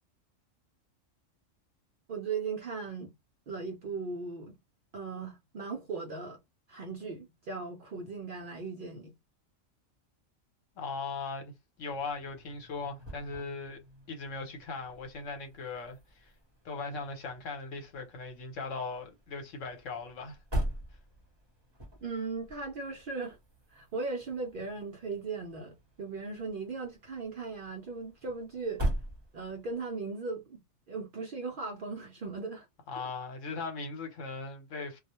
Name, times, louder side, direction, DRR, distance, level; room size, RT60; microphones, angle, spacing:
voice 1, 2.1-3.1 3.5-4.5 4.9-6.4 6.7-9.1 22.0-23.4 23.7-28.8 29.3-30.6 30.9-32.7, right 4 dB, 60° right, 0.6 m, -38 dB
voice 2, 10.8-11.5 11.8-13.8 14.1-16.3 16.6-20.4 32.9-35.0, left 4 dB, 70° left, 1.1 m, -39 dB
sound 1, 11.8-29.8, right 1 dB, 25° right, 0.8 m, -42 dB
2.3 x 2.1 x 2.9 m
omnidirectional pair, 1.4 m